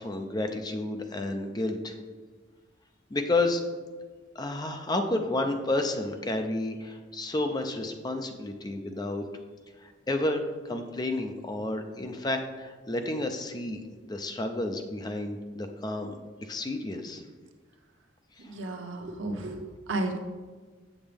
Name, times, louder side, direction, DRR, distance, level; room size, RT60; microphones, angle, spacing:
voice 1, 0.0-2.0 3.1-3.6 4.4-9.2 9.8-13.8 14.1-16.1 16.4-17.2 18.4-18.5, left 2 dB, 20° left, 6 dB, 0.5 m, -31 dB
voice 2, 18.4-20.2, right 2 dB, 85° right, 3 dB, 0.9 m, -33 dB
7.3 x 7.0 x 3.4 m, 1.4 s
head